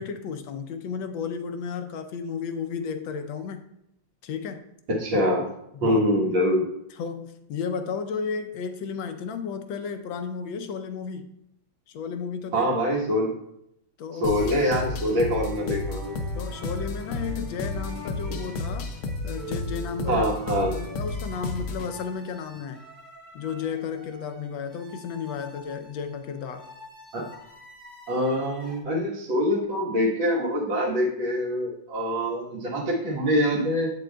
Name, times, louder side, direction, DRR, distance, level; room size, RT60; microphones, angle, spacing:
voice 1, 0.0-3.6 4.2-4.6 5.7-6.0 7.0-11.3 11.9-12.7 14.0-14.3 16.3-18.9 19.2-20.2 20.7-22.8 23.3-26.6, left 6 dB, 85° left, 8 dB, 1.5 m, -33 dB
voice 2, 4.9-5.5 5.8-6.6 12.5-13.3 14.2-16.2 20.1-20.8 27.1-27.3 28.1-33.9, equal, 80° right, -3 dB, 2.1 m, -24 dB
sound 1, 14.2-21.9, left 3 dB, 65° left, 1.0 m, -32 dB
sound 2, 14.4-28.8, right 2 dB, 30° right, 1.4 m, -46 dB
8.1 x 7.6 x 2.2 m, 0.78 s
omnidirectional pair, 2.1 m